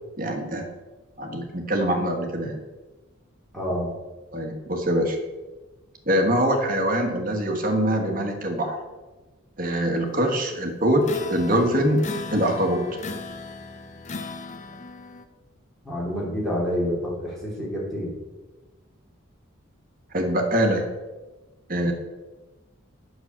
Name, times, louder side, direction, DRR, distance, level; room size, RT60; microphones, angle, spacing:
voice 1, 0.2-0.7 1.2-2.6 4.3-5.2 6.1-8.8 9.6-11.0 11.3-12.0 12.3-12.8 20.1-20.8 21.7-21.9, right 1 dB, 40° right, 3 dB, 1.6 m, -23 dB
voice 2, 3.5-3.9 15.8-18.1, equal, ahead, -6 dB, 3.1 m, -28 dB
sound 1, 11.0-15.2, left 3 dB, 35° left, 0.6 m, -37 dB
8.0 x 6.3 x 6.9 m, 1.2 s
head